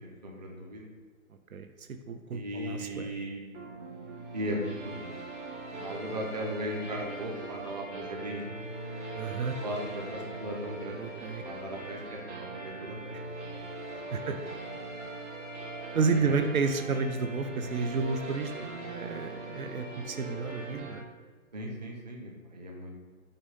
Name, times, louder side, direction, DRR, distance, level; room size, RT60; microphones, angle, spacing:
voice 1, 0.0-0.8 2.3-3.4 4.3-5.0 5.8-8.4 9.6-11.0 11.4-13.6 14.1-14.3 21.5-23.0, equal, 30° right, -1 dB, 0.7 m, -37 dB
voice 2, 1.5-3.1 9.2-9.6 11.0-11.4 13.1-13.2 14.1-14.4 15.9-21.1, right 4 dB, 70° right, 7 dB, 0.7 m, -31 dB
sound 1, 3.5-21.0, right 2 dB, 55° right, 1.8 m, -41 dB
6.9 x 2.8 x 5.3 m, 1.4 s
hypercardioid pair, 170°, 43 cm